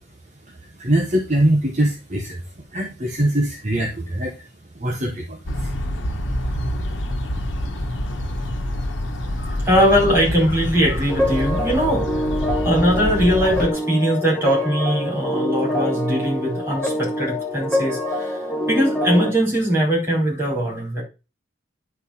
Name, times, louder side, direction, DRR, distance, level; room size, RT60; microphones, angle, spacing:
voice 1, 0.8-2.4 2.7-4.3 4.7-5.7, right 1 dB, 35° right, 1 dB, 1.2 m, -22 dB
sound 1, 5.5-13.7, left 1 dB, 75° left, 1.3 m, -26 dB
voice 2, 9.4-12.1 12.6-18.4 18.7-21.0, equal, 10° right, -4 dB, 4.7 m, -20 dB
sound 2, 11.1-19.3, left 1 dB, 5° left, 1.7 m, -25 dB
10.0 x 4.6 x 4.3 m, 0.30 s
head